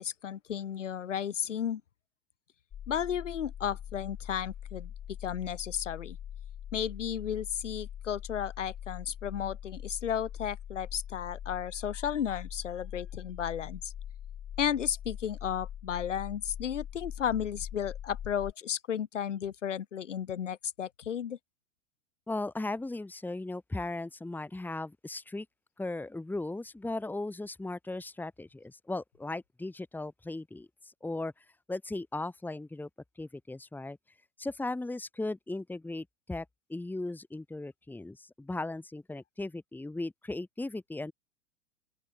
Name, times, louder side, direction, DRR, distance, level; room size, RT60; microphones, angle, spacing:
voice 1, 0.0-1.8 2.9-4.9 5.2-6.2 6.7-13.9 14.6-21.4, left 9 dB, 70° left, 1.1 m, -33 dB
sound 1, 2.7-18.5, left 10 dB, 25° left, 4.6 m, -43 dB
voice 2, 22.3-25.5 25.8-32.9 33.2-34.0 34.4-41.1, left 2 dB, 5° left, 2.5 m, -37 dB
open air
figure-of-eight pair, 90°, 38 cm